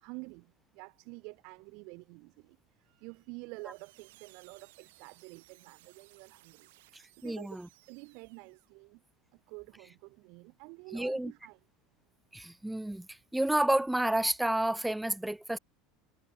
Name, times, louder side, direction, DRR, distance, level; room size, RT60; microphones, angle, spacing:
voice 1, 0.0-7.6 7.9-9.0 9.3-11.6, right 32 dB, 60° right, 2.9 m, -49 dB
sound 1, 3.5-8.7, right 21 dB, 80° right, 7.9 m, -61 dB
voice 2, 7.2-7.7 10.9-11.3 12.3-13.1 13.3-15.6, right 1 dB, 5° right, 0.3 m, -30 dB
supercardioid pair, 140°, 0 cm